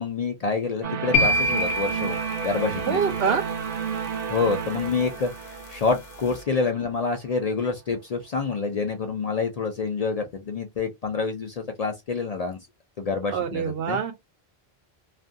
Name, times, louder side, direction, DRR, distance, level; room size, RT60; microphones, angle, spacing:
voice 1, 0.0-2.2 2.4-3.0 4.3-12.6 13.0-14.0, left 4 dB, 50° left, 0.5 m, -27 dB
sound 1, 0.8-6.9, right 7 dB, 50° right, 0.5 m, -32 dB
sound 2, 1.1-3.3, left 1 dB, 80° left, 0.8 m, -25 dB
voice 2, 2.8-3.4 13.3-14.1, right 6 dB, 75° right, 0.8 m, -25 dB
2.5 x 2.2 x 2.5 m
omnidirectional pair, 1.1 m